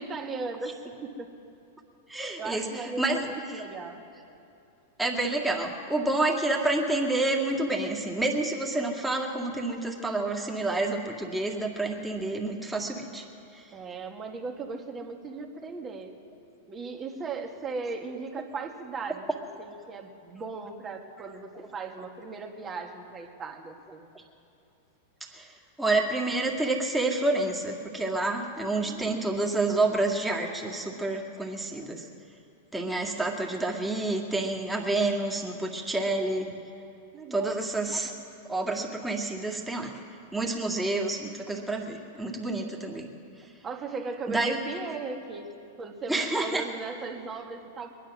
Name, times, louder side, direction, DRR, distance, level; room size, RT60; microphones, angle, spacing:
voice 1, 0.0-1.3 2.4-4.0 13.7-16.1 16.7-24.1 28.8-29.3 37.1-37.6 43.6-45.5 45.8-47.9, right 4 dB, 25° right, 3 dB, 1.9 m, -37 dB
voice 2, 2.1-3.6 5.0-13.3 13.5-13.6 25.3-32.1 32.7-36.5 37.3-38.1 38.5-39.9 40.3-43.1 44.3-44.6 46.1-46.6, right 2 dB, 5° right, -1 dB, 2.1 m, -29 dB
22.0 x 10.0 x 6.2 m, 2.7 s
hypercardioid pair, 105°, 0 cm